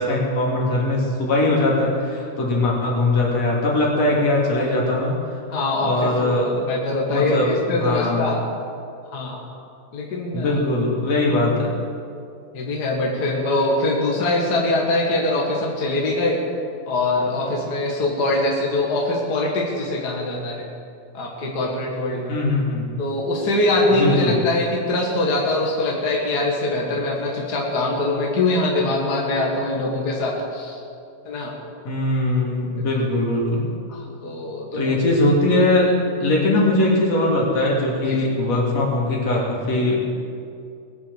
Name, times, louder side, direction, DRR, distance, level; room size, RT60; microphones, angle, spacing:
voice 1, 0.0-5.2 5.8-6.6 7.1-8.3 10.3-11.8 22.3-22.8 23.9-24.4 31.9-33.7 34.7-36.0 36.2-40.0, left 2 dB, 55° left, -3 dB, 3.7 m, -21 dB
voice 2, 5.5-8.4 9.1-9.4 9.9-10.6 12.5-16.4 16.9-20.6 21.1-22.3 23.0-30.8 31.3-31.5 33.9-34.9 38.1-38.3, left 2 dB, 35° left, -2 dB, 2.0 m, -23 dB
20.5 x 7.3 x 7.2 m, 2.4 s
omnidirectional pair, 3.6 m